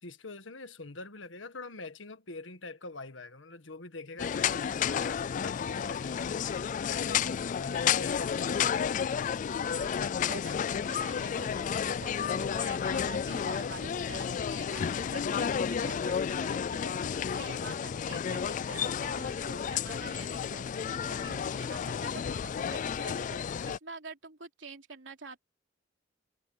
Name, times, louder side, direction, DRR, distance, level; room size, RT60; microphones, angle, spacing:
voice 1, 0.0-8.8, left 3 dB, 85° left, 1.6 m, -44 dB
sound 1, 4.2-23.8, left 7 dB, 40° left, 0.3 m, -31 dB
voice 2, 9.6-25.4, right 4 dB, 80° right, 3.1 m, -47 dB
head